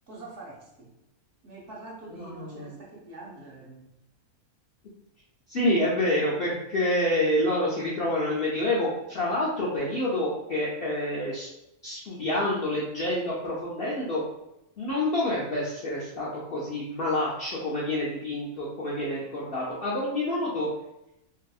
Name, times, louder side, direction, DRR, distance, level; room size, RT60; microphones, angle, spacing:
voice 1, 0.1-0.9 1.4-3.9, right 2 dB, 60° right, -3 dB, 0.9 m, -45 dB
voice 2, 2.1-2.7 5.5-11.5 11.8-14.2 14.8-20.7, left 1 dB, 65° left, -6 dB, 0.5 m, -28 dB
2.7 x 2.5 x 2.3 m, 0.86 s
omnidirectional pair, 1.5 m